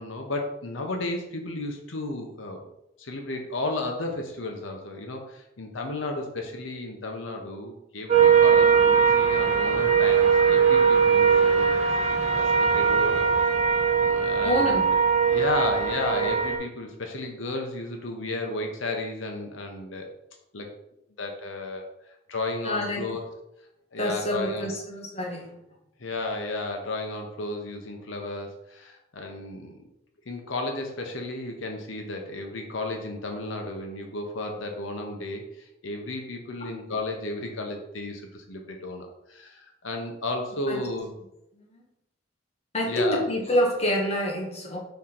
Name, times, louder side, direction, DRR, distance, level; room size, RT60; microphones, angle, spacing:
voice 1, 0.0-2.6 3.0-13.3 14.0-14.9 15.3-20.1 20.5-20.7 21.2-23.2 23.9-24.7 26.0-29.8 30.3-41.1 42.9-43.3, left 2 dB, 80° left, 3 dB, 0.9 m, -33 dB
sound 1, 8.1-16.6, right 6 dB, 35° right, 0.9 m, -20 dB
voice 2, 14.4-14.9 22.6-23.1 24.0-25.6 36.6-36.7 40.7-40.8 41.5-41.8 42.7-44.8, equal, 30° left, -1 dB, 1.3 m, -27 dB
5.7 x 3.8 x 4.4 m, 0.85 s
head